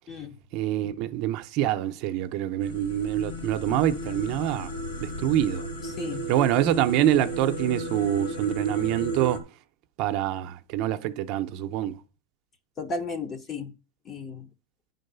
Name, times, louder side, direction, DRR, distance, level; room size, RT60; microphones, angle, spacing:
voice 1, 0.5-4.7 5.0-5.6 6.3-9.5 10.0-12.0, right 12 dB, 50° right, 0.6 m, -26 dB
sound 1, 2.6-9.4, right 1 dB, 90° left, 2.2 m, -34 dB
voice 2, 5.8-6.3 12.8-13.7 14.0-14.5, left 4 dB, 25° left, 1.0 m, -34 dB
9.9 x 4.0 x 6.7 m
supercardioid pair, 155°, 0 cm